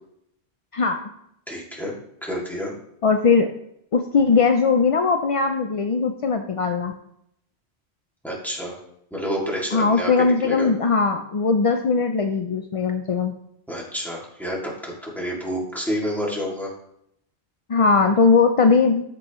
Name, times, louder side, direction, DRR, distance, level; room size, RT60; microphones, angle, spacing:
voice 1, 0.7-1.1 3.0-3.5 3.9-6.9 9.7-13.3 17.7-19.0, left 4 dB, 50° left, 6 dB, 0.4 m, -19 dB
voice 2, 1.5-1.9 2.2-2.7 8.2-8.8 9.1-10.7 13.7-16.7, equal, ahead, -4 dB, 2.3 m, -29 dB
13.5 x 5.4 x 3.0 m, 0.75 s
omnidirectional pair, 1.1 m